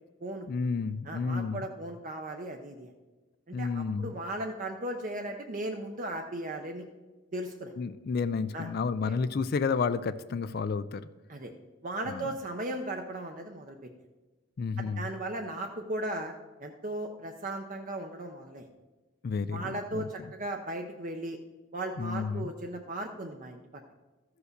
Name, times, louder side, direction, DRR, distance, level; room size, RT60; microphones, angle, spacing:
voice 1, 0.5-1.7 3.5-4.1 7.8-11.1 12.1-12.3 14.6-15.1 19.2-20.3 22.0-22.5, left 5 dB, 45° left, 13 dB, 0.3 m, -31 dB
voice 2, 1.1-2.9 3.5-6.9 7.3-7.7 8.5-8.7 9.1-9.2 11.3-11.5 11.8-13.8 14.8-16.3 16.6-18.7 19.5-21.4 21.7-23.6, right 1 dB, 40° right, 4 dB, 0.6 m, -37 dB
14.0 x 4.9 x 6.6 m, 1.2 s
head